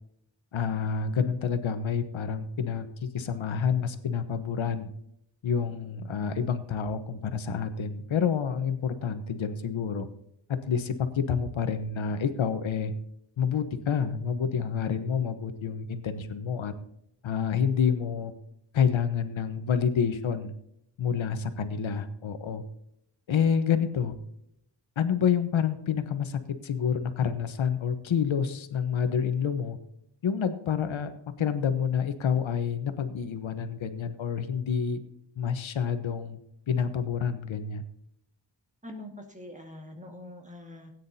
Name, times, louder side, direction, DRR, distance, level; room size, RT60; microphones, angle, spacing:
voice 1, 0.5-4.9 5.4-10.1 10.7-12.9 13.4-16.7 17.2-18.3 18.7-20.5 21.0-22.6 23.3-24.2 25.0-29.8 30.2-31.1 31.4-35.0 35.4-36.4 36.7-37.8, left 7 dB, 85° left, 10 dB, 1.1 m, -28 dB
voice 2, 38.8-40.9, left 1 dB, 15° right, 2 dB, 1.9 m, -44 dB
17.5 x 9.4 x 2.8 m, 0.75 s
wide cardioid pair, 160°, 46 cm